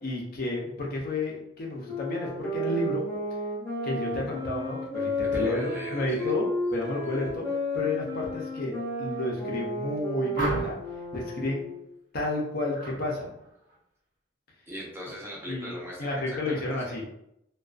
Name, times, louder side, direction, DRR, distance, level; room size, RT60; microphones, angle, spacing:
voice 1, 0.0-3.0 3.8-10.8 11.1-11.6 12.1-13.3 15.5-15.7 16.0-17.1, left 2 dB, 55° left, -2 dB, 0.6 m, -31 dB
sound 1, 1.8-11.9, equal, 15° left, 0.9 m, -32 dB
voice 2, 5.3-6.3 14.7-17.0, equal, 15° right, -4 dB, 0.6 m, -39 dB
sound 2, 10.3-11.0 12.7-13.0 13.4-13.8, equal, 80° right, 0.8 m, -33 dB
2.4 x 2.3 x 2.3 m, 0.79 s
head